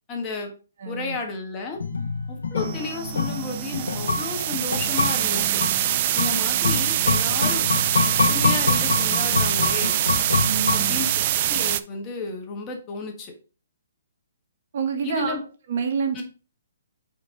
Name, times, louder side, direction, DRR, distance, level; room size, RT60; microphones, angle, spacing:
voice 1, 0.1-0.5 0.8-1.8 2.3-5.6 6.1-7.6 8.3-10.0 10.7-11.2 11.5-13.3 15.0-15.4 16.1-16.2, left 4 dB, 25° left, 2 dB, 1.6 m, -32 dB
voice 2, 0.8-1.2 10.4-11.0 14.7-15.4 15.7-16.2, right 6 dB, 60° right, 6 dB, 1.2 m, -27 dB
sound 1, 1.8-11.3 11.6-11.7, left 4 dB, 85° left, 1.0 m, -26 dB
sound 2, 2.6-11.8, right 12 dB, 45° right, 0.4 m, -24 dB
5.4 x 4.5 x 3.9 m, 0.36 s
hypercardioid pair, 140°, 0 cm